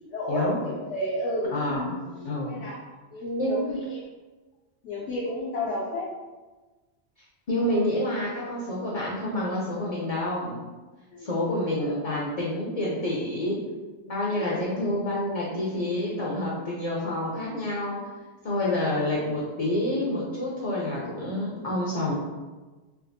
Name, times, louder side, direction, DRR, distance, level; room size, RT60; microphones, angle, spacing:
voice 1, 0.0-2.8 3.1-4.0 4.8-6.1 11.1-12.0 14.3-14.7 18.6-18.8, left 1 dB, 85° left, -6 dB, 1.0 m, -33 dB
voice 2, 1.5-1.9 2.2-2.6 3.4-3.6 7.5-10.6 11.2-13.6 14.1-18.0 18.4-22.1, left 1 dB, 45° left, -5 dB, 0.6 m, -28 dB
3.5 x 2.4 x 2.6 m, 1.3 s
omnidirectional pair, 1.2 m